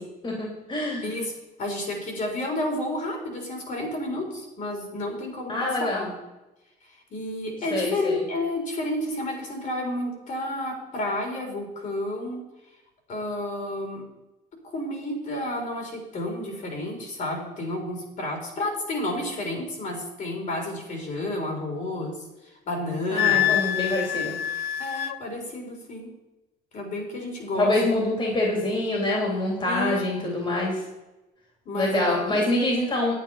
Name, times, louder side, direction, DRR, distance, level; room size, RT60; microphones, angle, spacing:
voice 1, 0.0-1.1 5.5-6.1 7.7-8.2 23.1-24.3 27.6-30.8 31.7-33.1, left 2 dB, 30° left, -1 dB, 3.2 m, -25 dB
voice 2, 1.0-1.3 1.6-6.1 7.1-12.4 13.1-14.0 14.6-22.2 22.7-23.6 24.8-26.1 26.7-27.8 29.6-30.0 30.2-30.3 31.7-32.4, left 1 dB, 50° left, 1 dB, 4.2 m, -31 dB
Wind instrument woodwind instrument, 23.2-25.2, left 12 dB, 70° left, 0.6 m, -25 dB
9.4 x 9.0 x 5.7 m, 1.0 s
cardioid pair, 110°, 17 cm